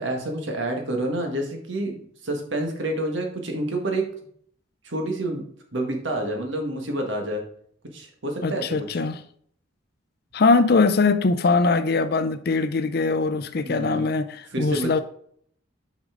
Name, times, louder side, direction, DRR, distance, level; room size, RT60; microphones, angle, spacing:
voice 1, 0.0-4.1 4.8-5.4 5.7-7.4 7.9-8.9 13.6-14.0 14.5-15.0, right 1 dB, 70° right, 1.6 m, -28 dB
voice 2, 8.4-9.2 10.3-15.0, left 3 dB, 50° left, 0.5 m, -21 dB
6.1 x 5.4 x 3.7 m
head